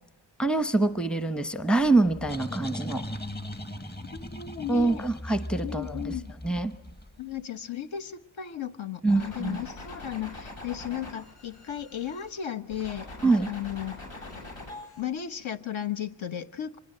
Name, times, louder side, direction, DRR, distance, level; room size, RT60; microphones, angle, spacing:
voice 1, 0.4-3.0 4.7-6.1 6.4-6.7 9.0-9.6 13.2-13.5, right 3 dB, ahead, 12 dB, 0.9 m, -25 dB
sound 1, 1.8-7.3, left 1 dB, 20° left, 1.4 m, -38 dB
voice 2, 4.1-5.0 5.6-6.3 7.2-13.1 13.5-13.9 15.0-16.8, left 10 dB, 70° left, 10 dB, 1.3 m, -35 dB
sound 2, 9.1-12.3 12.7-15.0, left 2 dB, 85° left, 7.8 m, -43 dB
24.5 x 20.5 x 7.8 m, 0.72 s
wide cardioid pair, 135°, 50 cm